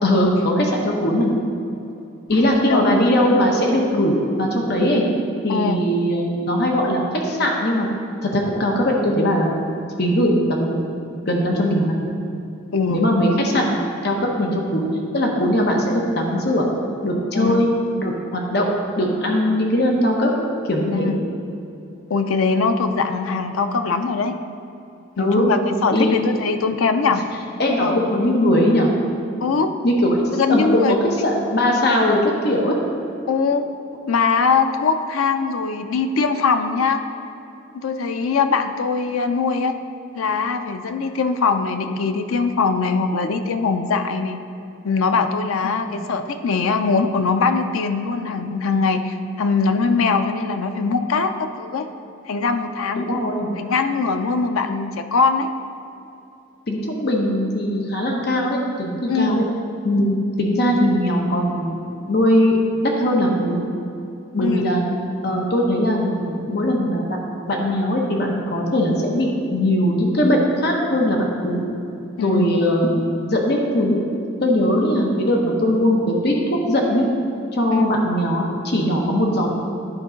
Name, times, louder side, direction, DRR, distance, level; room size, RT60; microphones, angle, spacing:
voice 1, 0.0-1.3 2.3-5.0 5.4-7.9 8.2-9.6 10.0-10.8 11.1-12.1 12.9-14.9 15.1-16.7 17.0-17.7 18.0-18.7 19.0-21.1 25.2-25.5 25.9-26.3 27.6-28.9 29.8-32.7 45.9-46.0 52.9-53.5 56.7-59.4 59.8-61.8 62.1-62.6 62.8-63.6 64.3-64.9 65.2-67.2 67.5-71.6 72.2-74.0 74.4-77.1 77.5-79.5, equal, 50° left, 0 dB, 0.9 m, -20 dB
voice 2, 17.3-17.7 20.9-21.2 22.1-24.3 25.2-27.2 27.8-28.1 29.4-29.7 30.3-31.0 33.3-33.7 34.1-37.0 37.8-39.8 40.2-44.4 44.8-51.9 52.3-53.2 53.5-55.5 59.1-59.4 64.4-64.7 72.2-72.5 77.7-77.9, left 4 dB, 85° left, 8 dB, 0.5 m, -21 dB
10.5 x 3.7 x 5.0 m, 2.7 s
head